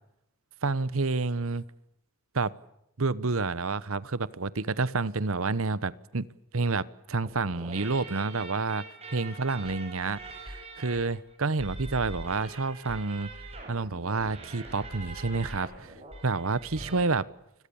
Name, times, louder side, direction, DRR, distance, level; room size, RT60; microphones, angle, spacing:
voice 1, 0.6-1.6 2.3-2.5 3.0-6.3 6.5-8.8 9.1-13.3 13.7-15.9 16.2-17.3, right 3 dB, 65° right, 1.0 m, -29 dB
sound 1, 7.2-17.0, right 2 dB, 25° right, 7.0 m, -43 dB
28.5 x 22.0 x 7.1 m
head